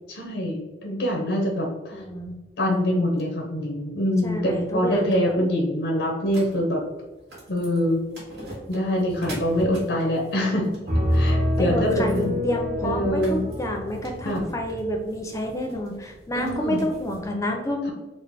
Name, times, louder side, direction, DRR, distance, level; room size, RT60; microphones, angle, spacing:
voice 1, 0.1-2.0 2.6-6.8 7.5-8.0 8.7-10.7 11.1-12.4 12.8-13.4 14.2-14.4 16.3-16.8, equal, 85° left, -1 dB, 0.7 m, -24 dB
voice 2, 1.9-2.4 4.2-5.4 11.6-17.9, left 1 dB, 20° left, 2 dB, 0.4 m, -29 dB
sound 1, 6.3-17.3, right 1 dB, 70° right, 1.3 m, -43 dB
sound 2, 9.1-10.0 10.9-14.9, left 1 dB, 50° right, 1.0 m, -27 dB
3.7 x 2.0 x 3.4 m, 1.1 s
head